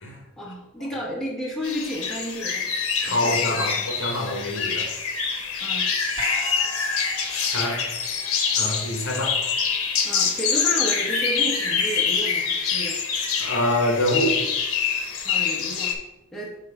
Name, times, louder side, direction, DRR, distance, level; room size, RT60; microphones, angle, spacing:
voice 1, 0.4-2.7 3.0-3.8 5.6-5.8 10.0-13.0 15.2-15.9 16.3-16.5, equal, ahead, -4 dB, 1.0 m, -32 dB
sound 1, 1.6-15.9, left 6 dB, 75° left, 0.9 m, -25 dB
voice 2, 3.0-4.9 7.5-7.8 8.6-9.4 13.4-14.4, left 1 dB, 60° left, 2 dB, 1.3 m, -25 dB
sound 2, 6.2-10.5 10.8-10.9, right 2 dB, 25° right, 2.5 m, -41 dB
6.6 x 3.7 x 4.8 m, 0.94 s
head